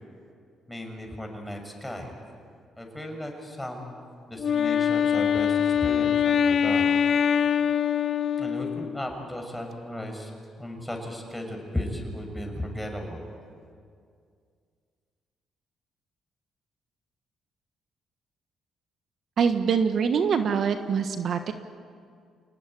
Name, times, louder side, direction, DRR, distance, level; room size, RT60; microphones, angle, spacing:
voice 1, 0.7-2.1 2.8-4.0 4.3-6.9 8.4-10.3 10.6-13.2, left 1 dB, 5° left, 3 dB, 6.4 m, -35 dB
Wind instrument woodwind instrument, 4.4-9.1, left 8 dB, 55° left, 0.7 m, -23 dB
voice 2, 19.4-21.5, right 6 dB, 60° right, 8 dB, 1.4 m, -24 dB
28.0 x 18.5 x 9.9 m, 2.2 s
cardioid pair, 90°, 0 cm